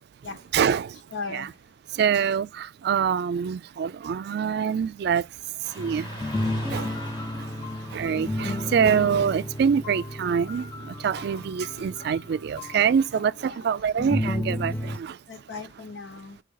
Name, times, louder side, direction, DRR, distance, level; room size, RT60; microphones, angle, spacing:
voice 1, 0.5-1.0 1.3-1.5 1.9-5.3 5.6-6.3 6.5-15.2, right 7 dB, 60° right, 0.3 m, -25 dB
voice 2, 1.1-1.6 13.1-13.7 15.3-16.4, left 4 dB, 90° left, 1.1 m, -38 dB
Car passing by / Traffic noise roadway noise, 5.6-14.7, equal, 25° left, 1.9 m, -46 dB
sound 1, 5.8-12.5 14.0-15.0, left 1 dB, 10° left, 0.4 m, -32 dB
sound 2, 6.3-14.2, left 5 dB, 50° left, 2.4 m, -45 dB
7.5 x 3.3 x 3.8 m
head